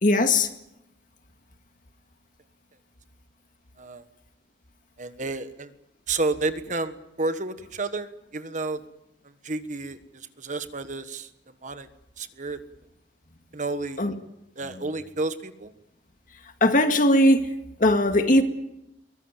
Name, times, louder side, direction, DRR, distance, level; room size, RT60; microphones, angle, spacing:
voice 1, 0.0-0.5 14.0-14.1 16.6-17.5 17.8-18.4, left 1 dB, 45° left, 2.0 m, -19 dB
voice 2, 5.0-5.7 6.1-8.8 9.2-11.3 11.6-11.9 12.2-12.6 13.5-14.0 14.6-15.7, right 3 dB, 45° right, 1.4 m, -31 dB
23.0 x 19.5 x 9.1 m
head